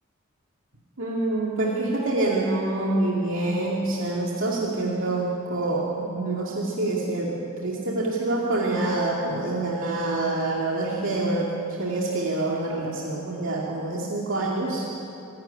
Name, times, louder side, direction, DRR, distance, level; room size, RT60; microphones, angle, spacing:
voice 1, 1.0-11.5 11.8-14.9, right 2 dB, 65° right, -3 dB, 2.4 m, -26 dB
25.5 x 11.5 x 10.0 m, 2.9 s
head